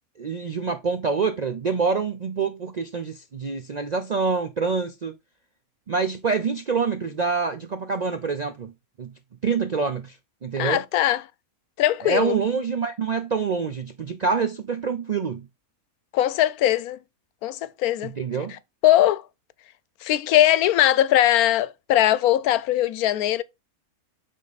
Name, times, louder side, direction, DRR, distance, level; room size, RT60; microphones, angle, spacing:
voice 1, 0.2-5.1 5.9-8.7 9.0-9.1 9.4-10.2 10.4-10.8 12.0-15.5 18.0-18.6, right 5 dB, 65° right, 0.4 m, -26 dB
voice 2, 10.6-11.2 11.8-12.4 16.1-17.0 17.4-18.1 18.5-19.3 20.0-23.4, left 13 dB, 85° left, 1.1 m, -20 dB
8.4 x 3.7 x 4.0 m
omnidirectional pair, 1.5 m